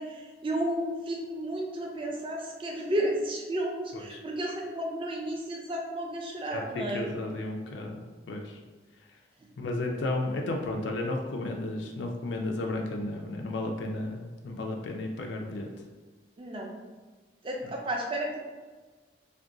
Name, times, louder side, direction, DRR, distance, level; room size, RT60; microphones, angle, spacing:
voice 1, 0.0-7.1 16.4-16.7 17.4-18.4, right 1 dB, 30° right, 0 dB, 0.4 m, -32 dB
voice 2, 6.5-8.6 9.6-15.7 17.6-17.7, left 2 dB, 85° left, 1 dB, 0.4 m, -33 dB
2.5 x 2.2 x 3.6 m, 1.4 s
head